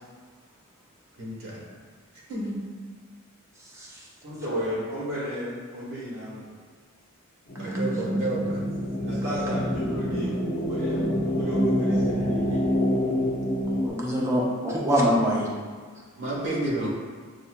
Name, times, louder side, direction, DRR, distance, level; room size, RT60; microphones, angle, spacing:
voice 1, 1.2-1.6 2.3-2.5 7.6-8.6 16.2-16.9, right 1 dB, 55° right, -4 dB, 1.2 m, -30 dB
voice 2, 4.2-6.5 9.0-12.6, equal, 80° right, -11 dB, 1.4 m, -33 dB
sound 1, 7.5-13.9, equal, 50° left, 0.6 m, -26 dB
voice 3, 13.7-15.5, equal, 10° right, -4 dB, 0.6 m, -25 dB
6.4 x 2.7 x 2.3 m, 1.5 s
head